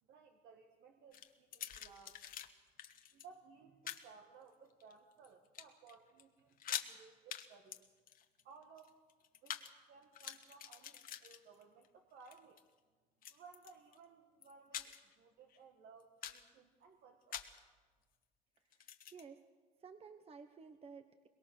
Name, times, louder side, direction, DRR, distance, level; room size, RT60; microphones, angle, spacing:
voice 1, 0.0-2.2 3.1-7.9 8.4-9.0 9.4-12.6 13.3-17.4, right 5 dB, 70° right, 3 dB, 1.8 m, -60 dB
sound 1, 1.1-2.5 2.8-3.3 3.9-4.1 4.7-5.3 5.5-5.9 6.2-6.3 6.5-6.9 7.3-7.5 7.7-9.7 10.0-11.9 12.2-12.6 13.2-14.0 14.4-15.1 15.5-15.6 16.0-16.5 17.3-17.6 18.7-19.2, left 10 dB, 55° left, 1.4 m, -46 dB
voice 2, 19.1-19.4 19.8-21.3, right 5 dB, 35° right, 8 dB, 1.0 m, -54 dB
23.5 x 21.0 x 6.6 m, 1.4 s
cardioid pair, 110°, 17 cm